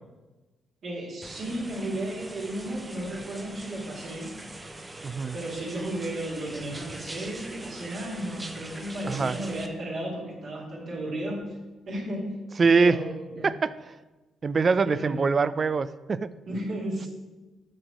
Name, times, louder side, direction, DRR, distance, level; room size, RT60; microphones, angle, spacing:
voice 1, 0.8-4.3 5.3-11.4 11.9-12.4 12.6-13.5 14.8-15.2 16.5-17.1, right 1 dB, 60° right, -4 dB, 2.3 m, -34 dB
sound 1, 1.2-9.7, right 2 dB, 15° right, 0.7 m, -42 dB
voice 2, 5.0-5.4 9.1-9.4 12.6-13.0 13.4-14.0 14.4-16.3, right 4 dB, 40° right, 16 dB, 0.3 m, -23 dB
6.4 x 6.2 x 4.8 m, 1.1 s
cardioid pair, 90°, 0 cm